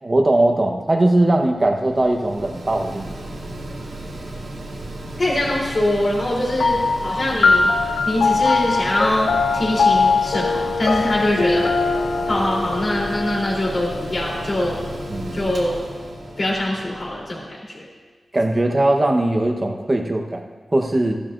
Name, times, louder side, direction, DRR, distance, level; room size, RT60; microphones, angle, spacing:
voice 1, 0.0-3.2 15.1-15.4 18.3-21.2, right 1 dB, 30° right, 3 dB, 1.0 m, -20 dB
Mechanical fan, 1.2-17.4, right 1 dB, 85° right, 2.0 m, -34 dB
voice 2, 5.2-7.7 8.0-11.7 12.3-14.8 15.3-15.8 16.4-17.9, left 1 dB, 45° left, -4 dB, 3.4 m, -23 dB
sound 1, 6.6-15.4, left 4 dB, 75° left, 0.8 m, -21 dB
14.5 x 12.0 x 2.6 m, 1.4 s
wide cardioid pair, 110°, 0 cm